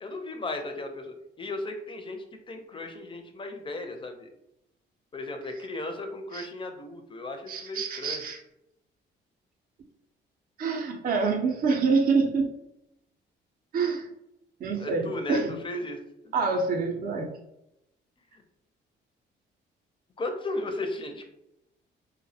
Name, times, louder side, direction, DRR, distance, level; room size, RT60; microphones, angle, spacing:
voice 1, 0.0-2.2 2.5-4.3 5.1-8.2 14.8-16.0 20.2-21.2, left 2 dB, 25° left, 5 dB, 0.4 m, -35 dB
voice 2, 7.5-8.4 10.6-12.5 13.7-14.1 14.6-15.5 16.3-17.3, right 4 dB, 45° right, 1 dB, 0.4 m, -26 dB
2.3 x 2.0 x 2.6 m, 0.84 s
cardioid pair, 90°, 20 cm